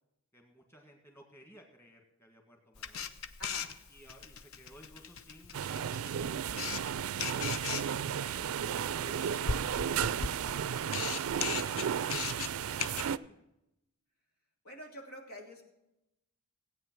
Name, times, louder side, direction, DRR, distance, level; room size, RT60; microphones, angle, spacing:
voice 1, 0.3-3.2 3.9-7.5, equal, 10° left, 2 dB, 1.8 m, -57 dB
Camera, 2.8-13.1, left 6 dB, 70° left, 0.7 m, -39 dB
voice 2, 3.4-3.7 14.6-15.6, equal, 85° left, 0 dB, 2.8 m, -47 dB
sound 1, 5.5-13.2, right 8 dB, 75° right, 0.4 m, -34 dB
17.0 x 8.8 x 6.1 m, 0.88 s
head